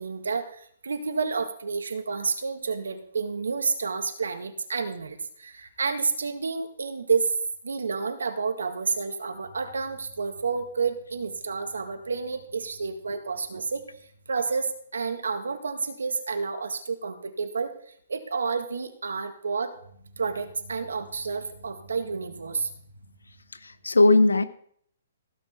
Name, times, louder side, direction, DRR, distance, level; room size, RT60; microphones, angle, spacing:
voice 1, 0.0-7.3 7.6-13.9 14.3-17.7 18.1-19.8 20.1-22.7, right 5 dB, 80° right, 7 dB, 1.8 m, -30 dB
voice 2, 23.6-24.4, left 2 dB, 90° left, 12 dB, 1.0 m, -19 dB
16.5 x 6.1 x 4.4 m, 0.63 s
hypercardioid pair, 130°, 0 cm